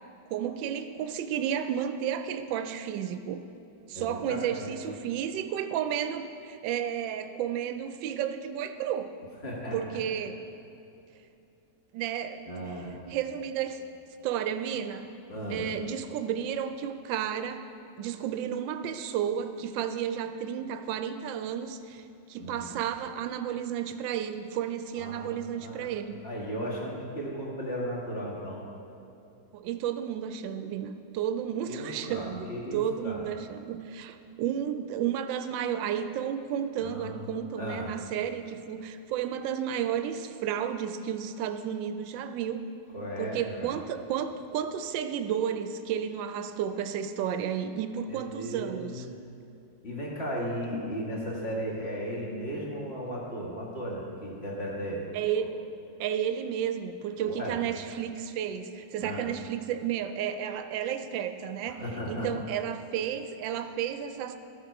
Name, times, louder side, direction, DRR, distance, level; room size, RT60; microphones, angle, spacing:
voice 1, 0.3-3.4 3.9-9.1 9.7-10.4 11.9-12.5 13.1-13.8 14.2-15.1 15.5-17.6 18.0-26.1 29.5-42.7 43.2-49.1 55.1-55.6 56.0-64.4, right 9 dB, 90° right, 8 dB, 1.3 m, -32 dB
voice 2, 3.9-4.7 9.4-10.0 12.5-12.9 15.3-15.6 22.4-22.8 25.0-25.8 26.2-28.6 31.6-33.3 36.8-37.2 37.6-37.9 42.9-43.7 48.1-48.9 49.8-55.0 55.3-55.4 57.2-57.6 59.0-59.3 61.8-62.3, equal, 35° left, -4 dB, 2.0 m, -36 dB
13.5 x 7.4 x 4.6 m, 2.7 s
omnidirectional pair, 2.0 m